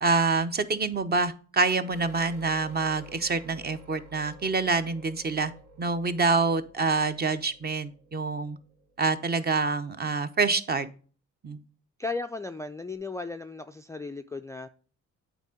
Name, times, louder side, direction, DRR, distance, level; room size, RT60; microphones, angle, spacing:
voice 1, 0.0-5.5 5.8-8.6 9.0-10.9 11.4-11.6, right 4 dB, 30° right, 11 dB, 0.7 m, -26 dB
sound 1, 1.9-9.6 12.9-13.0, right 1 dB, 75° right, 1.4 m, -52 dB
voice 2, 12.0-14.7, left 3 dB, 10° left, 9 dB, 0.3 m, -35 dB
8.2 x 3.8 x 4.9 m, 0.40 s
cardioid pair, 90°, 30 cm